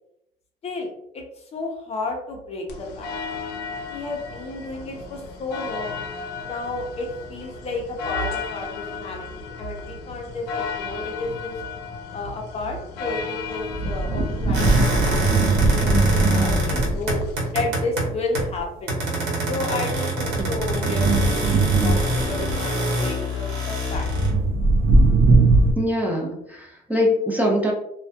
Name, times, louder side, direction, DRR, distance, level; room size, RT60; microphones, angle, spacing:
voice 1, 0.6-3.1 3.9-6.0 6.4-11.6 12.1-17.2 17.5-18.9 19.5-24.1, left 2 dB, 40° left, 0 dB, 0.5 m, -32 dB
sound 1, 2.7-17.5, left 5 dB, 85° left, 0.5 m, -35 dB
sound 2, 13.6-17.4 18.4-18.6 19.9-22.5 23.9-25.7, right 3 dB, 65° right, 0.5 m, -20 dB
sound 3, 14.5-18.6 18.9-24.5, right 1 dB, 85° right, 1.0 m, -25 dB
voice 2, 25.8-27.7, left 1 dB, 10° right, -1 dB, 0.5 m, -23 dB
2.2 x 2.1 x 2.7 m, 0.79 s
cardioid pair, 110°, 17 cm